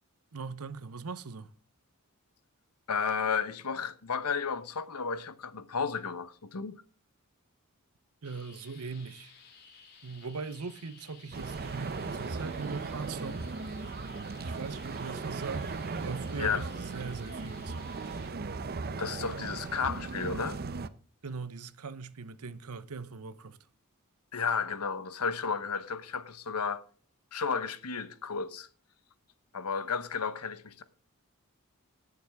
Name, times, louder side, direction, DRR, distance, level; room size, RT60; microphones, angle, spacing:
voice 1, 0.3-1.5 8.2-9.3 10.0-13.5 14.4-15.7 16.0-17.9 21.2-23.6, right 4 dB, 80° right, 0.8 m, -40 dB
voice 2, 2.9-6.8 16.4-16.7 19.0-20.6 24.3-26.8 27.3-28.7 29.5-30.8, left 5 dB, 85° left, 1.0 m, -33 dB
sound 1, 8.2-18.3, left 5 dB, 50° left, 2.9 m, -56 dB
sound 2, 11.3-20.9, right 4 dB, 45° right, 0.6 m, -37 dB
19.0 x 7.0 x 3.5 m
head